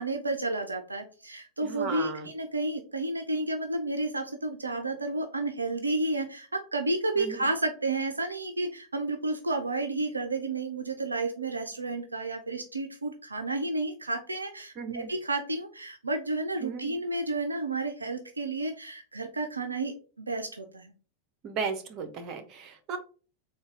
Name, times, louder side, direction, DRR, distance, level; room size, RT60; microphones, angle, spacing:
voice 1, 0.0-20.9, right 2 dB, 80° right, 5 dB, 0.4 m, -31 dB
voice 2, 1.6-2.3 7.2-7.4 14.8-15.1 16.6-16.9 21.4-23.0, right 5 dB, 35° right, 6 dB, 0.7 m, -35 dB
3.9 x 2.2 x 3.5 m, 0.37 s
figure-of-eight pair, 90°, 0 cm